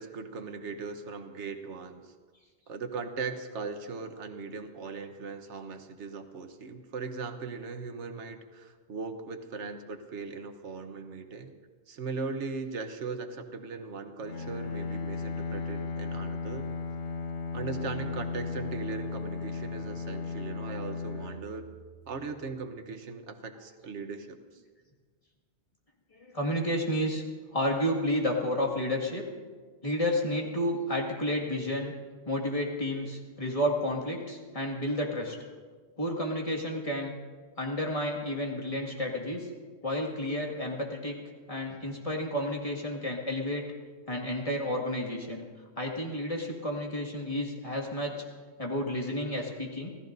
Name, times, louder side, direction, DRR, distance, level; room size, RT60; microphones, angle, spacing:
voice 1, 0.0-2.1 2.7-11.5 11.9-16.7 17.5-21.7 22.1-24.6, right 4 dB, 80° right, 7 dB, 1.3 m, -39 dB
Bowed string instrument, 14.2-22.2, left 4 dB, 80° left, 1.3 m, -36 dB
voice 2, 26.2-27.2 27.5-29.2 29.8-31.9 32.3-35.4 36.0-37.1 37.6-39.5 39.8-41.2 41.5-43.6 44.1-45.4 45.8-48.2 48.6-49.9, left 1 dB, 30° left, -1 dB, 2.1 m, -31 dB
27.0 x 16.5 x 2.6 m, 1.5 s
omnidirectional pair, 1.2 m